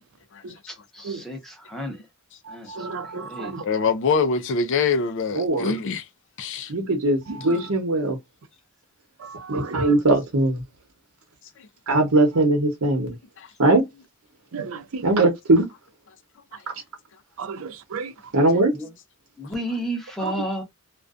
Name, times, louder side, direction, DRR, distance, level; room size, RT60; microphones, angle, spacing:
voice 1, 0.9-2.0 2.5-2.7 3.2-3.5 18.7-18.9 19.4-20.6, equal, ahead, 0.8 m, -31 dB
voice 2, 2.5-3.6 7.3-7.6 9.2-9.9 14.5-15.1 17.4-18.1 20.2-20.3, right 4 dB, 65° right, 0.5 m, -34 dB
voice 3, 3.6-6.0 6.4-6.7 13.4-13.5, left 5 dB, 55° left, 0.4 m, -24 dB
voice 4, 5.3-5.7 6.7-7.2 7.4-8.2 9.5-10.6 11.9-13.2 13.6-13.8 15.0-15.7 18.3-18.7, right 2 dB, 85° right, 0.9 m, -20 dB
2.5 x 2.2 x 2.4 m
head